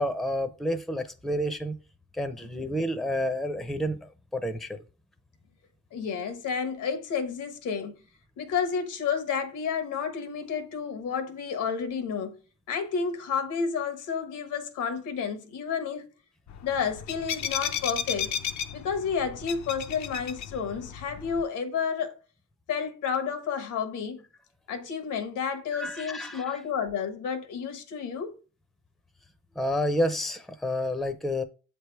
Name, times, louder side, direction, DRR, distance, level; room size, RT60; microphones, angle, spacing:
voice 1, 0.0-1.7 2.1-4.8 25.7-26.5 29.6-31.4, equal, ahead, 0.6 m, -29 dB
voice 2, 5.9-7.9 8.4-12.4 12.7-16.1 16.6-18.3 18.7-22.1 22.7-24.2 24.7-28.4, left 6 dB, 85° left, 1.2 m, -31 dB
sound 1, 16.5-21.4, left 8 dB, 65° left, 0.6 m, -34 dB
7.5 x 3.4 x 4.5 m
cardioid pair, 90°, 30 cm